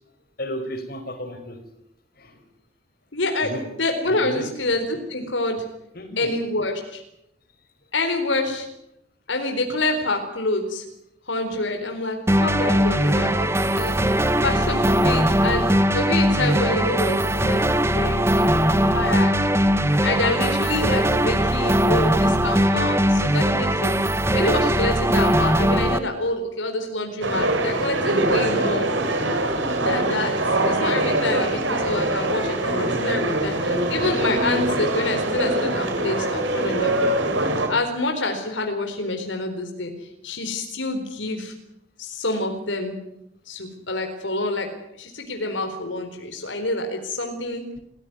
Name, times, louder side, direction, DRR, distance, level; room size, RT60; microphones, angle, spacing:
voice 1, 0.4-1.6 2.2-2.3 3.4-3.6 4.1-4.5 5.9-6.3, equal, 50° left, 7 dB, 5.3 m, -33 dB
voice 2, 3.1-5.6 6.2-7.0 7.9-8.7 9.3-10.8 11.3-14.0 14.4-15.7 15.9-19.3 20.0-28.9 29.8-30.4 30.6-37.1 37.7-39.9 40.2-41.5 42.0-43.0 43.5-44.7 45.0-47.6, left 2 dB, 85° left, 4 dB, 4.2 m, -27 dB
sound 1, 12.3-26.0, equal, 15° right, 1.2 m, -20 dB
sound 2, 27.2-37.7, right 1 dB, 80° right, 6.0 m, -23 dB
28.0 x 16.5 x 9.6 m, 0.80 s
head